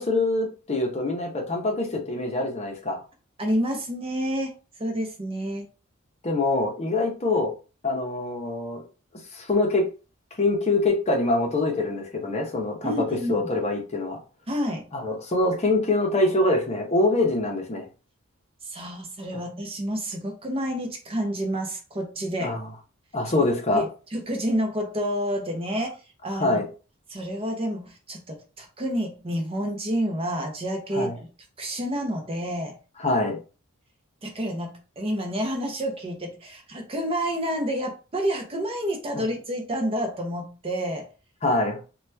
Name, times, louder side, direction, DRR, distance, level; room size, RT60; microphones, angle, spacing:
voice 1, 0.0-3.0 6.2-7.5 7.8-8.8 9.3-9.9 10.4-14.2 14.9-17.8 22.4-22.7 23.1-23.8 26.3-26.6 30.9-31.1 33.0-33.4 39.1-39.2 41.4-41.8, left 2 dB, 30° left, 1 dB, 0.7 m, -24 dB
voice 2, 3.4-5.7 12.8-13.5 14.5-14.9 18.6-22.6 23.7-25.9 26.2-26.6 27.1-31.3 31.6-32.8 34.2-41.1, equal, 30° right, 2 dB, 0.7 m, -29 dB
2.8 x 2.2 x 3.3 m, 0.34 s
head